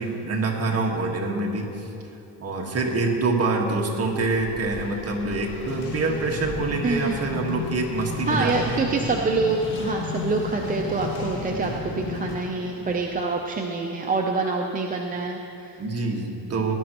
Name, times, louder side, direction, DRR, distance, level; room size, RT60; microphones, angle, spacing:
voice 1, 0.0-1.9 2.4-8.9 15.8-16.8, right 3 dB, 35° right, 0 dB, 1.7 m, -26 dB
Race car auto racing, 4.0-13.6, left 2 dB, 30° left, 1.8 m, -40 dB
sound 1, 5.7-12.4, left 4 dB, 85° left, 2.4 m, -34 dB
voice 2, 6.8-7.2 8.3-15.8, right 3 dB, 20° right, 1 dB, 0.6 m, -26 dB
18.0 x 11.5 x 3.0 m, 2.9 s
cardioid pair, 125°, 40 cm